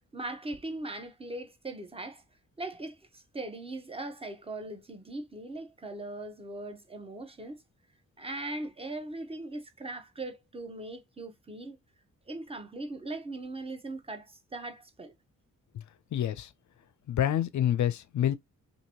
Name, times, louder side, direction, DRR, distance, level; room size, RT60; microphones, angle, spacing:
voice 1, 0.1-2.2 2.6-7.6 8.2-11.8 12.3-15.1, right 2 dB, 15° right, 0.7 m, -40 dB
voice 2, 16.1-16.5 17.1-18.4, left 11 dB, 60° left, 0.5 m, -27 dB
2.9 x 2.6 x 2.8 m
cardioid pair, 65°, 33 cm